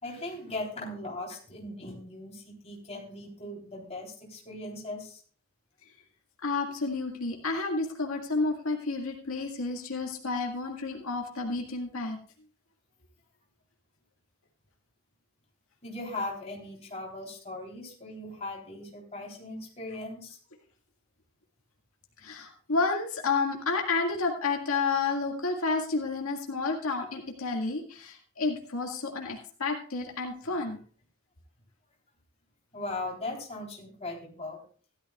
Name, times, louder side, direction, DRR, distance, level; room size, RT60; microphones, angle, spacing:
voice 1, 0.0-5.2 15.8-20.4 30.4-30.5 32.7-34.6, left 2 dB, 30° left, -2 dB, 3.5 m, -39 dB
voice 2, 6.4-12.2 22.2-30.8, left 3 dB, 80° left, 1 dB, 2.0 m, -30 dB
16.0 x 12.5 x 2.4 m, 0.42 s
head